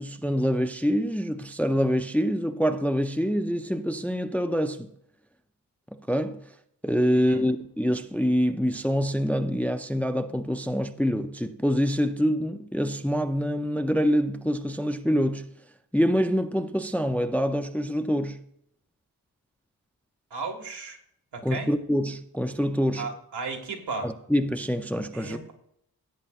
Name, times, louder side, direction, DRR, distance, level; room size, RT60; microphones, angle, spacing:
voice 1, 0.0-4.9 6.1-6.4 6.8-15.5 15.9-18.4 21.4-23.1 24.0-25.4, equal, 5° left, 0.4 m, -25 dB
voice 2, 7.1-7.5 20.3-21.0 21.3-21.7 23.0-24.1 25.1-25.5, right 4 dB, 85° right, 1.8 m, -35 dB
16.5 x 8.7 x 2.4 m
wide cardioid pair, 160°, 39 cm